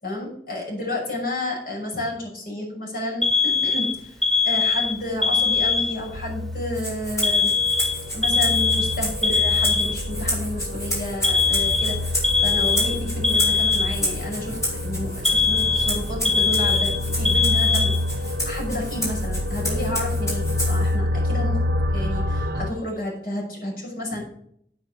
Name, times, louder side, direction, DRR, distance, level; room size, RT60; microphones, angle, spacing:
voice 1, 0.0-7.5 8.1-24.2, left 1 dB, 55° left, -2 dB, 6.0 m, -31 dB
Alarm, 3.2-6.2 7.2-10.2 11.2-14.2 15.2-18.2, left 4 dB, ahead, 0.6 m, -21 dB
sound 1, 5.0-22.7, left 1 dB, 60° right, 1.2 m, -28 dB
Rattle (instrument), 6.7-20.9, equal, 20° left, 4.9 m, -31 dB
8.9 x 8.8 x 6.3 m, 0.67 s
head